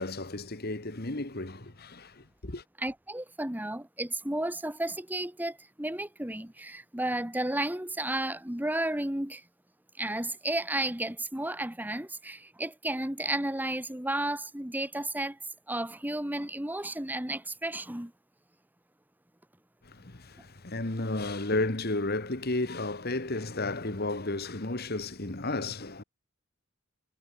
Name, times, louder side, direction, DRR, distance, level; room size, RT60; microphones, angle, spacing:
voice 1, 0.0-2.6 19.8-26.0, left 2 dB, 45° left, 1.8 m, -33 dB
voice 2, 2.8-9.4 10.0-15.4 15.7-18.1, right 1 dB, 10° right, 1.4 m, -33 dB
head